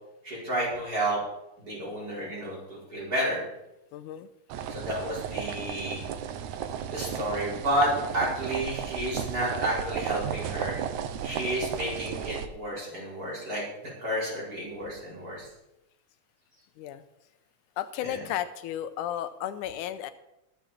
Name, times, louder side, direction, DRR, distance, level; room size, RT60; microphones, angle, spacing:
voice 1, 0.2-1.2 1.6-3.4 4.7-6.0 6.8-10.8 11.2-15.5 18.0-18.2, right 1 dB, 30° right, -6 dB, 4.9 m, -31 dB
voice 2, 3.9-4.3 16.8-17.0 17.8-20.1, left 11 dB, 90° left, 12 dB, 2.2 m, -33 dB
sound 1, 4.5-12.5, right 8 dB, 75° right, 2.1 m, -34 dB
20.5 x 7.2 x 4.3 m, 0.89 s
omnidirectional pair, 3.5 m